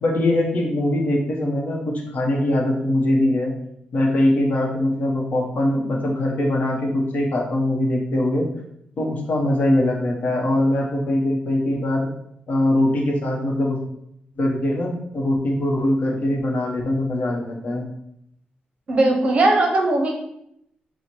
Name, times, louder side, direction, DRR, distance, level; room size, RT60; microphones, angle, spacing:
voice 1, 0.0-3.5 3.9-8.5 9.0-12.1 12.5-13.8 14.4-17.8, left 1 dB, 60° left, 0 dB, 0.9 m, -22 dB
voice 2, 18.9-20.1, right 2 dB, 40° right, 2 dB, 0.6 m, -18 dB
4.3 x 2.1 x 4.4 m, 0.76 s
wide cardioid pair, 165°, 3 cm